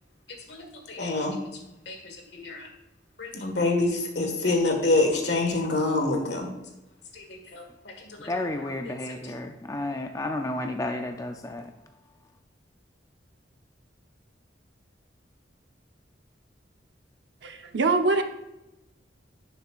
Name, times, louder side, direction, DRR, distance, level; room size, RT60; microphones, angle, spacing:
voice 1, 0.9-1.4 1.9-2.6 3.2-6.5 7.2-7.3 7.5-7.6, left 2 dB, 70° left, 3 dB, 1.6 m, -26 dB
voice 2, 8.3-11.7, left 2 dB, 20° left, 4 dB, 0.4 m, -32 dB
voice 3, 17.4-18.2, right 3 dB, 75° right, 6 dB, 0.8 m, -23 dB
11.0 x 6.7 x 2.4 m, 0.96 s
head